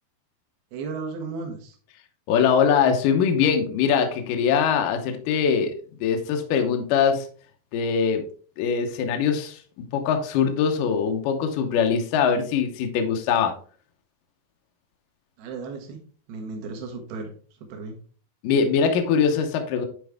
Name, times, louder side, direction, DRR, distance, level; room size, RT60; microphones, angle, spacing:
voice 1, 0.7-1.7 15.4-16.0 16.3-17.3 17.7-17.9, right 4 dB, 70° right, 3 dB, 3.1 m, -34 dB
voice 2, 2.3-5.7 6.0-7.3 7.7-8.2 8.6-9.6 9.9-13.5 18.4-19.9, left 7 dB, 70° left, 5 dB, 2.2 m, -22 dB
9.8 x 4.6 x 3.5 m, 0.43 s
omnidirectional pair, 4.7 m